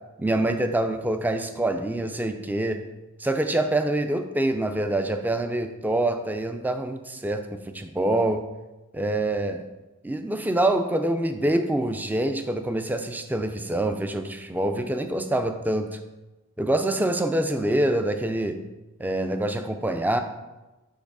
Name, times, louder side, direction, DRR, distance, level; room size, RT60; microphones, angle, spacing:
voice 1, 0.2-2.8 3.2-8.4 8.9-9.6 10.0-16.0 16.6-18.6 19.0-20.2, right 1 dB, 10° right, 7 dB, 0.3 m, -25 dB
6.4 x 3.2 x 4.8 m, 1.1 s
head